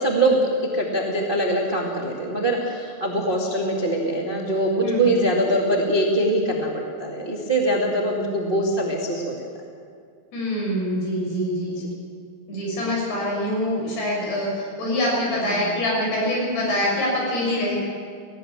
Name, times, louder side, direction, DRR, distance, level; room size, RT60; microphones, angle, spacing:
voice 1, 0.0-9.3 11.8-11.9 15.4-15.7, right 1 dB, 40° right, -1 dB, 0.7 m, -23 dB
voice 2, 4.8-5.1 10.3-11.8 12.5-17.8, left 1 dB, 60° left, -2 dB, 8.3 m, -25 dB
18.5 x 16.5 x 8.9 m, 2.2 s
omnidirectional pair, 5.3 m